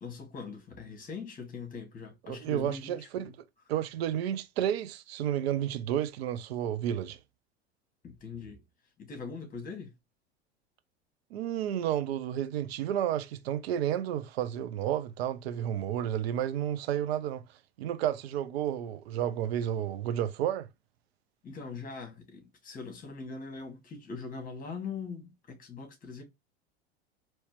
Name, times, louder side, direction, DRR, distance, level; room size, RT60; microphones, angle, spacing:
voice 1, 0.0-3.3 8.0-8.6 9.0-9.9 21.4-26.2, left 5 dB, 25° left, 2.1 m, -41 dB
voice 2, 2.3-3.3 3.7-7.2 11.3-17.4 17.8-20.7, right 11 dB, 65° right, 0.6 m, -31 dB
4.2 x 3.1 x 3.2 m
hypercardioid pair, 80°, 32 cm